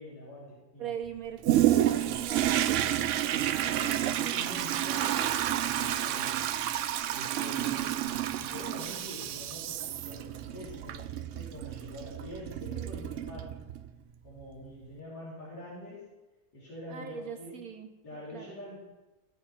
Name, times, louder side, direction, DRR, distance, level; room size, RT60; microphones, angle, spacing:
voice 1, 0.0-0.9 2.3-2.6 3.5-6.5 7.1-13.6 14.2-16.1 16.5-17.6 18.0-18.8, left 1 dB, 70° left, -9 dB, 3.8 m, -45 dB
voice 2, 0.8-3.0 16.9-18.6, right 8 dB, 65° right, 7 dB, 1.2 m, -41 dB
Toilet flush, 1.4-13.9 14.4-14.5, right 12 dB, 80° right, 0.6 m, -30 dB
15.5 x 7.7 x 4.4 m, 1.1 s
omnidirectional pair, 1.8 m